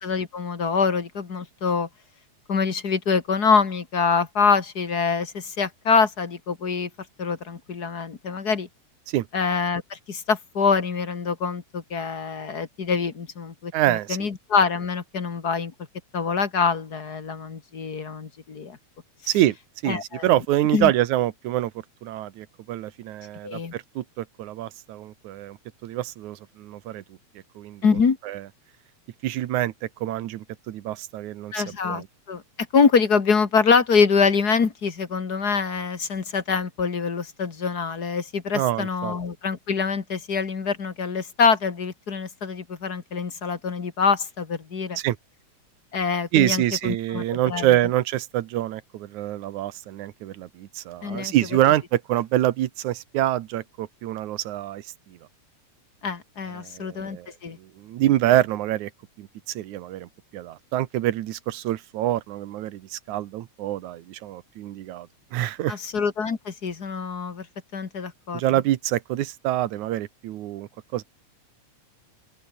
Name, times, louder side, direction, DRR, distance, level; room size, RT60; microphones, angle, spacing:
voice 1, 0.0-1.9 2.5-6.9 7.2-8.7 9.3-15.7 16.1-18.8 19.9-20.3 20.7-20.9 23.4-23.7 27.8-28.2 31.5-32.4 32.7-45.0 45.9-47.7 51.0-51.3 56.0-57.6 65.7-67.5 67.7-68.4, left 5 dB, 35° left, 2.2 m, -25 dB
voice 2, 13.7-14.3 19.3-19.6 19.8-21.7 22.0-27.0 27.6-27.8 28.3-28.4 29.2-32.1 38.5-39.2 45.0-45.2 46.3-55.2 56.5-57.3 57.6-58.9 59.2-65.8 68.3-71.0, right 14 dB, 80° right, 2.5 m, -26 dB
open air
omnidirectional pair, 3.4 m